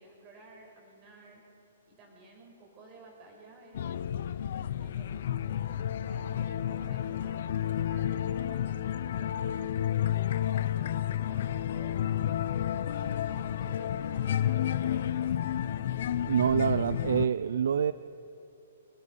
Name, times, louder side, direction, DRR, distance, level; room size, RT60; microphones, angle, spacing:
voice 1, 0.0-1.4 1.9-4.3 4.8-5.7 6.0-12.4 12.9-15.5, right 2 dB, 20° right, -1 dB, 5.5 m, -54 dB
sound 1, 3.7-17.3, left 10 dB, 45° left, 0.7 m, -31 dB
voice 2, 16.2-17.9, right 8 dB, 65° right, 15 dB, 0.4 m, -26 dB
28.0 x 18.0 x 5.6 m, 3.0 s
hypercardioid pair, 175°, 0 cm